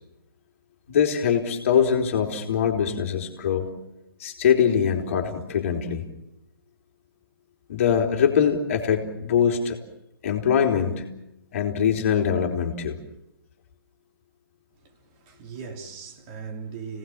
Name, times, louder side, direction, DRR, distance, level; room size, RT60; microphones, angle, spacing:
voice 1, 0.9-3.7 4.2-6.1 7.7-9.8 10.2-11.0 11.5-13.0, left 7 dB, 35° left, 3.5 m, -23 dB
voice 2, 14.8-17.0, right 5 dB, 25° right, 3.4 m, -39 dB
29.5 x 19.0 x 7.3 m
figure-of-eight pair, 130°, 12 cm